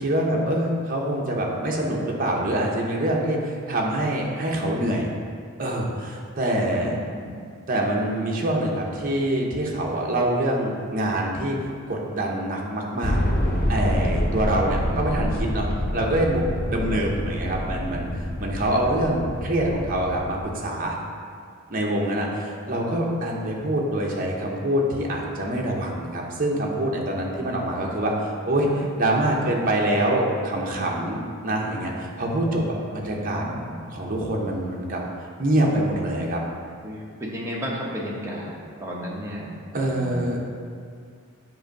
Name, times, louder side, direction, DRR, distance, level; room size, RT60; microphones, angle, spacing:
voice 1, 0.0-5.1 5.6-6.9 7.7-11.6 11.9-13.2 13.7-18.1 18.4-21.0 21.7-28.7 29.0-32.6 32.9-33.4 33.9-35.0 35.4-36.4 39.7-40.5, right 1 dB, 40° right, -2 dB, 0.8 m, -25 dB
voice 2, 6.7-7.3 14.5-15.1 16.8-17.0 22.2-23.1 28.6-28.9 29.2-29.5 32.8-33.8 36.8-40.2, equal, 15° right, -4 dB, 0.8 m, -35 dB
sound 1, 13.0-20.4, equal, 40° left, 0.7 m, -27 dB
7.8 x 2.6 x 5.1 m, 2.2 s
head